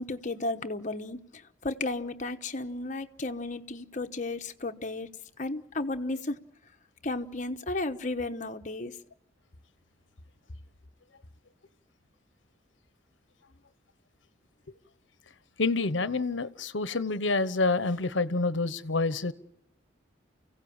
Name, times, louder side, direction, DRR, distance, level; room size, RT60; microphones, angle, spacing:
voice 1, 0.0-5.1 5.4-6.4 7.0-9.0, left 2 dB, 40° left, 1.1 m, -34 dB
voice 2, 15.6-19.3, left 3 dB, 75° left, 1.0 m, -27 dB
29.5 x 16.0 x 7.2 m
head